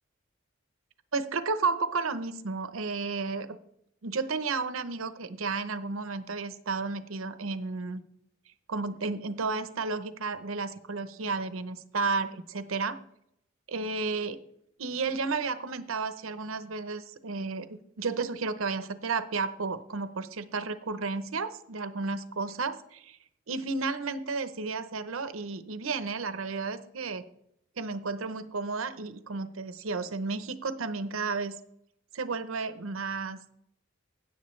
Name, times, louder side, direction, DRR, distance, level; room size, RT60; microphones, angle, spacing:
voice 1, 1.1-3.6 4.0-8.0 8.7-13.0 13.7-14.4 14.8-23.2 23.5-27.2 27.8-31.5 32.1-33.5, right 4 dB, 90° right, 12 dB, 0.8 m, -32 dB
16.5 x 7.4 x 3.2 m, 0.74 s
head